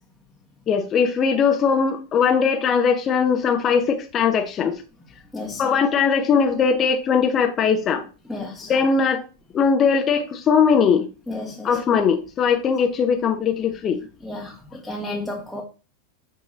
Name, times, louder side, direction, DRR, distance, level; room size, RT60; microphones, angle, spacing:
voice 1, 0.7-4.7 5.6-8.0 8.7-9.2 9.5-11.1 11.6-14.0, left 6 dB, 25° left, 0.7 m, -20 dB
voice 2, 8.3-8.7 11.3-11.7 14.2-14.5 14.8-15.6, left 2 dB, 5° left, 1.2 m, -31 dB
8.6 x 3.0 x 3.9 m
figure-of-eight pair, 90°, 0 cm